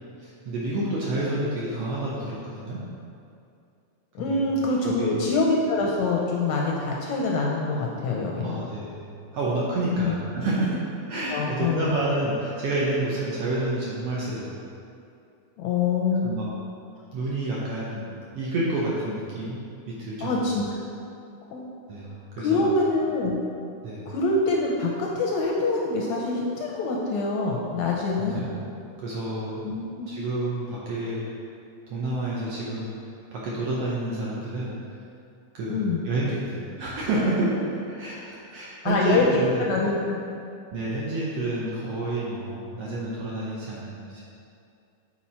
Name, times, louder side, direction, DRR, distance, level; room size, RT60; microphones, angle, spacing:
voice 1, 0.2-2.8 4.3-4.4 4.8-5.2 8.4-14.5 16.2-16.4 17.1-18.1 18.3-19.6 19.9-20.5 21.9-22.7 23.8-24.1 28.2-28.5 29.0-29.6 30.1-31.2 31.9-33.0 33.3-34.7 35.5-37.6 37.9-39.6 40.7-44.2, right 2 dB, 70° right, -6 dB, 1.6 m, -29 dB
voice 2, 4.2-8.6 9.9-10.2 11.3-11.9 15.6-16.3 20.2-20.7 21.5-21.7 22.4-23.3 24.1-28.5 29.6-30.1 35.7-36.0 38.8-40.2, left 3 dB, 80° left, -2 dB, 1.7 m, -25 dB
7.1 x 4.5 x 4.3 m, 2.5 s
omnidirectional pair, 3.6 m